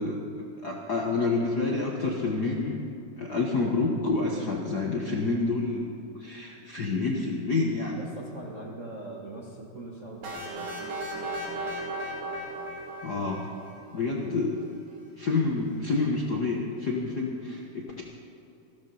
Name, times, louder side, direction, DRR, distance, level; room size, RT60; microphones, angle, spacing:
voice 1, 0.0-2.9 3.2-5.9 6.2-8.1 13.0-13.5 13.9-14.6 15.2-18.0, left 3 dB, 55° left, -1 dB, 1.1 m, -28 dB
voice 2, 8.0-10.8, right 2 dB, 45° right, -4 dB, 1.0 m, -41 dB
sound 1, 10.2-14.0, right 1 dB, 70° right, 3.8 m, -36 dB
14.5 x 13.0 x 5.5 m, 2.7 s
omnidirectional pair, 3.4 m